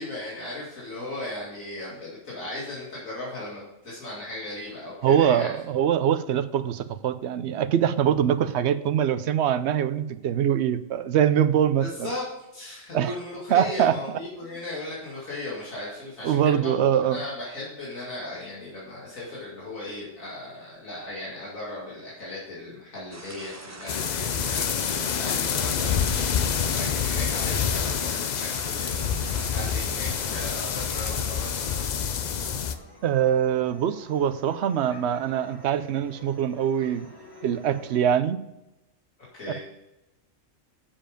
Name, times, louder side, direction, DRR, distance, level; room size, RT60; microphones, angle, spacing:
voice 1, 0.0-5.5 11.8-12.3 12.5-31.7 39.3-39.6, left 2 dB, 85° left, -7 dB, 2.8 m, -37 dB
voice 2, 5.0-12.1 12.9-13.1 13.5-13.9 16.2-17.2 33.0-37.1 37.4-38.4, right 9 dB, 65° right, 13 dB, 0.8 m, -23 dB
sound 1, 23.1-31.9, right 2 dB, 20° right, 0.5 m, -43 dB
sound 2, 23.9-32.8, left 7 dB, 60° left, 0.4 m, -27 dB
sound 3, 32.3-38.0, equal, 20° left, 1.3 m, -48 dB
7.3 x 7.1 x 5.1 m, 0.95 s
omnidirectional pair, 1.4 m